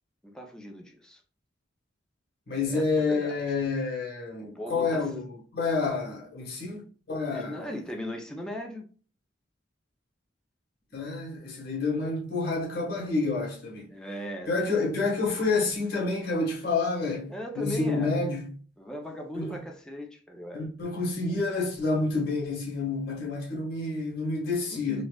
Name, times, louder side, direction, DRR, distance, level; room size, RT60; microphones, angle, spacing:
voice 1, 0.2-1.2 2.6-3.4 4.6-5.1 7.3-8.9 13.9-14.6 17.3-18.2 18.8-20.7 24.7-25.0, equal, 5° left, 0.5 m, -38 dB
voice 2, 2.5-7.6 10.9-13.9 14.5-18.5 19.3-19.5 20.5-25.0, left 3 dB, 55° left, 1.4 m, -29 dB
4.1 x 2.4 x 2.3 m
head